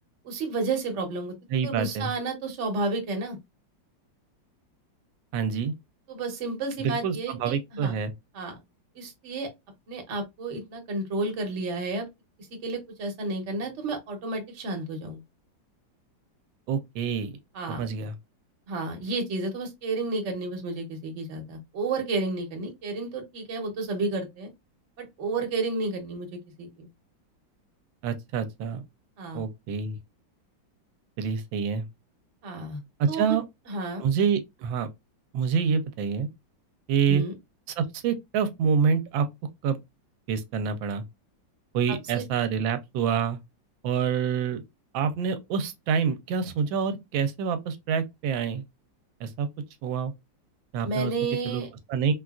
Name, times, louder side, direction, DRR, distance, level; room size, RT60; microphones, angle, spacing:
voice 1, 0.2-1.3 1.6-3.4 6.1-8.0 8.3-8.6 8.9-9.5 9.9-12.1 12.6-15.2 17.5-17.8 18.7-24.5 25.0-26.3 26.6-26.9 29.2-29.4 32.4-32.8 33.1-33.4 33.7-34.0 37.1-37.3 42.1-42.2 50.8-51.7, right 3 dB, 45° right, 1.1 m, -31 dB
voice 2, 1.5-2.1 5.3-5.7 6.8-8.1 16.7-17.4 17.7-18.1 28.0-28.8 29.3-30.0 31.2-31.9 33.0-33.4 34.0-34.9 35.3-36.3 36.9-37.2 37.8-39.3 39.6-39.8 40.3-41.0 41.7-43.4 43.8-44.6 44.9-48.6 49.2-49.5 49.8-50.1 50.7-51.1 51.4-52.1, right 6 dB, 85° right, 1.3 m, -27 dB
3.8 x 2.3 x 2.3 m
omnidirectional pair, 2.1 m